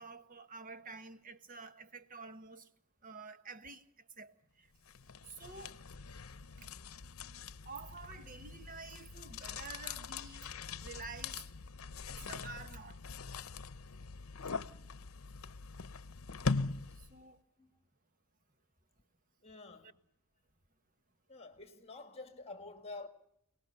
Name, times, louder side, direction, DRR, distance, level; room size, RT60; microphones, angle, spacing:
voice 1, 0.0-2.7 3.0-3.8 4.2-4.7 5.2-5.8 6.6-6.7 7.6-10.5 10.8-11.4 12.1-13.0 17.0-17.4 19.8-19.9, right 4 dB, 40° right, 1.3 m, -49 dB
sound 1, 4.9-17.2, left 4 dB, 75° left, 0.8 m, -42 dB
voice 2, 19.4-20.0 21.3-23.1, left 3 dB, 30° left, 1.6 m, -48 dB
29.0 x 19.0 x 6.7 m
head